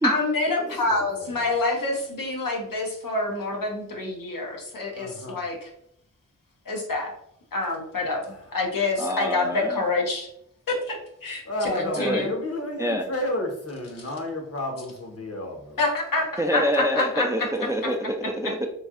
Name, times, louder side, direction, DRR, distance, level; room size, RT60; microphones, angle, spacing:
voice 1, 0.0-5.7 6.7-7.1 7.5-8.2 8.5-10.3 10.7-12.3 15.8-17.5, left 2 dB, 80° left, 0 dB, 0.8 m, -27 dB
voice 2, 0.9-1.5 4.9-5.4 8.2-8.5 11.4-15.8, left 1 dB, 45° left, 2 dB, 0.9 m, -32 dB
voice 3, 9.0-9.8 12.0-12.2 12.8-13.0 16.4-18.7, equal, 10° right, 4 dB, 0.3 m, -26 dB
3.2 x 2.6 x 2.4 m, 0.73 s
wide cardioid pair, 50°, 33 cm